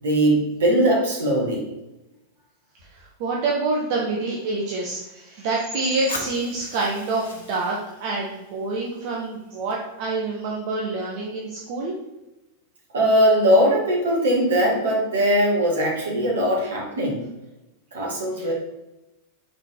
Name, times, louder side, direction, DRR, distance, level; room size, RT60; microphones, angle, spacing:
voice 1, 0.0-1.6 12.9-17.2 17.9-18.5, equal, 65° right, -2 dB, 2.0 m, -20 dB
voice 2, 2.9-12.0 18.4-18.5, right 3 dB, 45° right, -2 dB, 1.0 m, -27 dB
Fire, 6.1-10.1, left 2 dB, 70° left, 1.2 m, -40 dB
5.3 x 4.0 x 4.5 m, 0.98 s
figure-of-eight pair, 90°, 0 cm